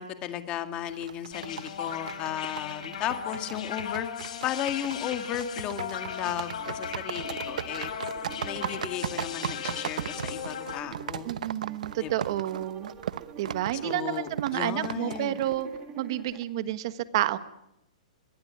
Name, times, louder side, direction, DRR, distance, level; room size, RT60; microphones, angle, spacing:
voice 1, 0.0-4.1 4.4-7.9 8.4-11.3 12.0-12.1 13.8-15.4, left 11 dB, 20° left, 8 dB, 2.0 m, -34 dB
sound 1, 0.8-15.8, right 8 dB, 75° right, 1.0 m, -38 dB
sound 2, 1.3-10.8, left 8 dB, 65° left, 4.0 m, -37 dB
sound 3, 6.6-16.4, right 6 dB, 20° right, 2.1 m, -47 dB
voice 2, 11.2-12.9 13.4-15.7 16.0-17.4, right 13 dB, 40° right, 13 dB, 1.4 m, -30 dB
23.0 x 22.5 x 9.6 m, 0.81 s
hypercardioid pair, 165°, 4 cm